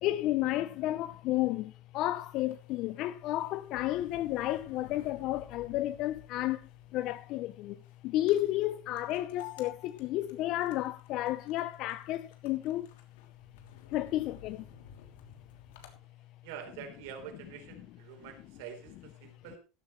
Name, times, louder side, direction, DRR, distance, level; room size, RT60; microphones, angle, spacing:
voice 1, 0.0-7.8 8.0-12.9 13.9-14.6, left 15 dB, 45° left, 0.5 m, -32 dB
sound 1, 2.2-16.0, left 10 dB, 80° left, 3.0 m, -54 dB
voice 2, 16.4-19.6, right 8 dB, 65° right, 3.9 m, -46 dB
14.5 x 12.0 x 3.2 m
supercardioid pair, 160°, 0 cm